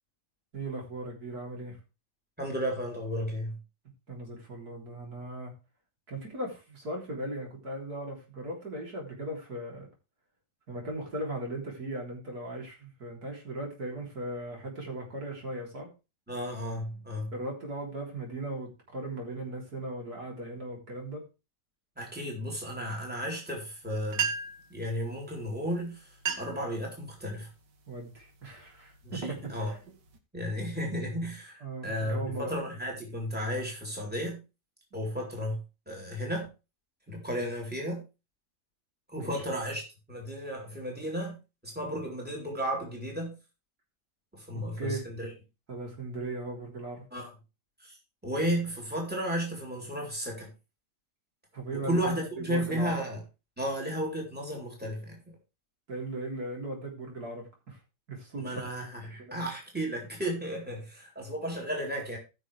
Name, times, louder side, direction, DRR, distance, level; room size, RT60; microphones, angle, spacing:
voice 1, 0.5-1.8 4.1-5.5 6.1-9.9 10.7-15.9 17.3-21.2 27.9-29.8 31.6-32.5 39.1-39.4 44.8-45.1 45.7-47.0 51.5-53.0 55.9-57.8 58.1-58.5 59.2-59.4, right 2 dB, 60° right, 4.2 m, -38 dB
voice 2, 2.4-3.6 16.3-17.3 22.0-24.3 24.7-26.1 26.4-27.5 29.0-29.7 30.3-34.4 34.9-35.6 35.9-36.5 37.1-38.0 39.1-39.8 40.1-41.3 41.6-43.3 44.3-45.3 47.1-47.3 47.8-48.0 48.2-50.5 51.7-53.2 53.6-55.2 58.4-62.2, equal, 5° right, 3.9 m, -33 dB
sound 1, 23.8-23.9 24.1-24.7 25.6-25.7 26.1-26.7 27.2-27.5 28.1-28.4 28.9-30.2, right 6 dB, 85° right, 2.0 m, -34 dB
16.0 x 6.4 x 3.4 m
omnidirectional pair, 1.8 m